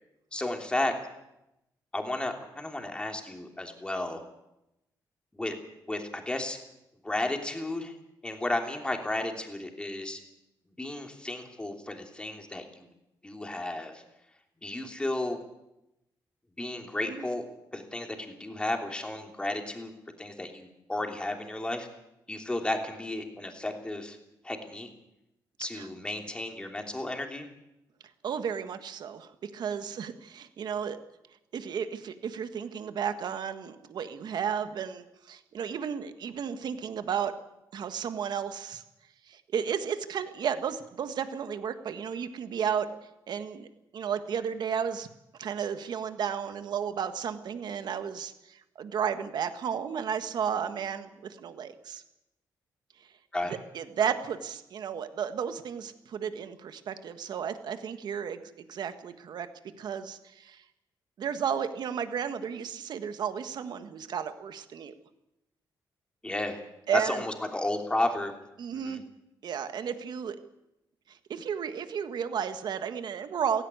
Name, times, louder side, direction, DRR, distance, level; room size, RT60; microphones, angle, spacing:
voice 1, 0.3-0.9 1.9-4.2 5.3-5.6 5.8-6.6 7.0-7.9 8.2-10.2 10.8-12.9 13.2-14.0 14.6-15.4 16.6-17.4 17.7-19.9 20.2-21.9 22.3-24.2 24.4-24.9 25.6-27.5 53.3-53.5 66.2-66.6 66.9-68.3 68.7-69.0, left 1 dB, 15° left, 3 dB, 3.0 m, -33 dB
voice 2, 28.2-31.0 31.5-37.3 37.7-38.8 39.3-42.9 43.3-45.1 45.4-52.0 53.5-59.5 59.8-60.6 61.2-64.9 66.9-67.2 68.6-69.0 69.4-70.4 71.1-73.6, right 7 dB, 65° right, 9 dB, 1.6 m, -33 dB
16.5 x 16.5 x 9.6 m, 0.89 s
cardioid pair, 125°, 8 cm